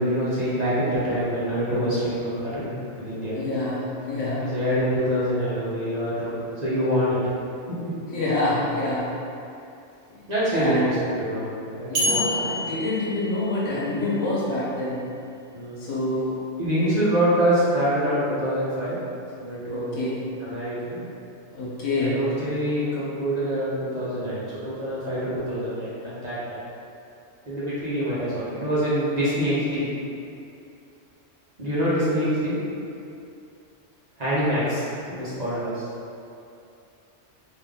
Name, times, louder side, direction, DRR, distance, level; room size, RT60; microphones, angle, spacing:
voice 1, 0.0-3.4 4.4-7.2 7.7-7.9 10.3-10.9 11.2-11.5 11.8-12.2 12.7-12.8 15.5-15.8 16.6-19.0 19.4-20.1 20.4-21.0 22.0-26.6 27.5-29.8 31.6-32.5 34.2-35.7, equal, 40° right, -10 dB, 1.0 m, -25 dB
voice 2, 3.3-4.5 8.1-9.1 10.5-10.9 11.9-15.0 15.8-16.3 19.7-20.2 21.5-22.2, left 2 dB, 85° left, -7 dB, 1.3 m, -26 dB
sound 1, 11.9-14.0, left 1 dB, 80° right, 1.2 m, -28 dB
3.7 x 2.7 x 3.5 m, 2.6 s
omnidirectional pair, 1.2 m